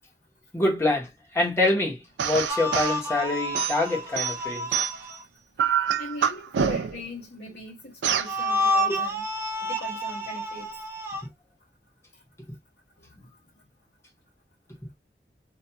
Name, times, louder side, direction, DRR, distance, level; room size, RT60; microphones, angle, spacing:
voice 1, 0.5-4.8 8.9-9.0, left 2 dB, 15° left, 0.8 m, -26 dB
sound 1, 2.2-3.0 3.5-5.2 5.6-7.1 8.0-8.3, right 8 dB, 85° right, 0.4 m, -26 dB
sound 2, 2.5-5.2 8.2-11.2, left 1 dB, 15° right, 0.4 m, -29 dB
voice 2, 6.0-9.2 9.6-10.7 13.0-13.1, left 2 dB, 50° left, 0.7 m, -39 dB
2.3 x 2.2 x 2.6 m
head